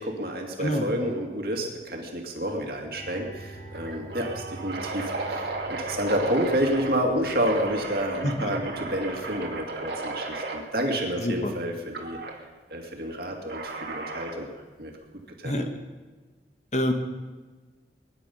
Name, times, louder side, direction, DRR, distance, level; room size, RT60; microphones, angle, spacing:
voice 1, 0.0-12.2 12.7-14.5 14.8-14.9 15.4-15.5, equal, 55° right, 1 dB, 2.4 m, -29 dB
sound 1, 2.5-2.8 3.1-3.2 3.7-7.0 7.4-10.6 11.9-12.4 13.5-14.4, right 3 dB, 75° right, 2.1 m, -34 dB
sound 2, 2.9-9.7, right 1 dB, 70° left, 6.8 m, -45 dB
voice 2, 8.2-8.5 11.2-11.5 15.4-15.7 16.7-16.9, equal, 40° left, 6 dB, 1.3 m, -26 dB
22.5 x 10.5 x 5.5 m, 1.3 s
head